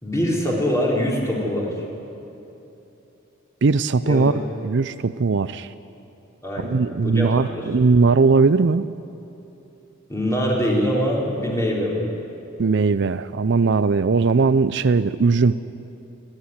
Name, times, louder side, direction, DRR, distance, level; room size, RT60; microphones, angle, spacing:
voice 1, 0.0-1.7 4.0-4.3 6.4-7.7 10.1-12.1, equal, 15° left, -3 dB, 4.0 m, -23 dB
voice 2, 3.6-4.3 4.6-5.7 6.6-8.9 12.6-15.6, right 4 dB, 60° right, 14 dB, 0.5 m, -19 dB
29.5 x 11.5 x 9.8 m, 2.9 s
head